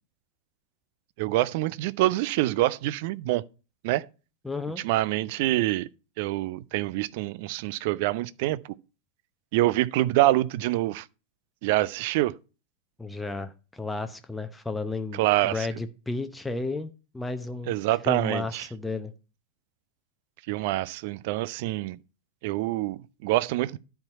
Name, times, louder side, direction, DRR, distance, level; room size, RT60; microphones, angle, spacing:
voice 1, 1.2-3.4 3.8-4.1 4.8-5.9 6.2-8.6 9.5-11.1 11.6-12.3 15.1-15.7 17.7-18.7 20.5-22.0 22.4-23.8, right 17 dB, 50° right, 0.4 m, -26 dB
voice 2, 4.4-4.8 13.0-17.7 18.1-19.1, left 3 dB, 5° left, 0.7 m, -33 dB
10.5 x 4.6 x 5.4 m
figure-of-eight pair, 90°, 0 cm